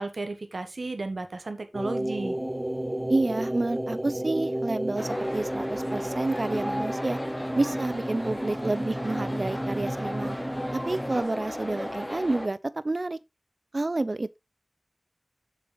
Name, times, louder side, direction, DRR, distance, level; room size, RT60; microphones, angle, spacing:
voice 1, 0.0-2.4, right 3 dB, 80° right, 1.4 m, -33 dB
sound 1, 1.7-11.2, right 1 dB, 20° right, 0.8 m, -32 dB
voice 2, 3.1-7.2 7.6-10.4 10.7-13.2 13.7-14.4, right 2 dB, 55° right, 0.6 m, -29 dB
sound 2, 5.0-12.5, equal, 15° left, 2.8 m, -35 dB
6.9 x 6.8 x 3.9 m
wide cardioid pair, 45°, 0 cm